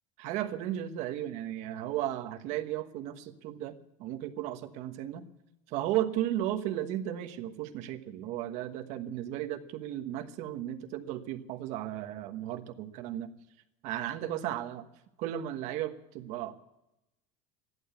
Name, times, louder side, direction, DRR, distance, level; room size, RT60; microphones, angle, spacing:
voice 1, 0.2-5.2 5.7-13.3 13.8-14.9 15.2-16.5, right 12 dB, 45° right, 6 dB, 1.3 m, -35 dB
14.5 x 11.0 x 8.2 m, 0.90 s
cardioid pair, 175°, 16 cm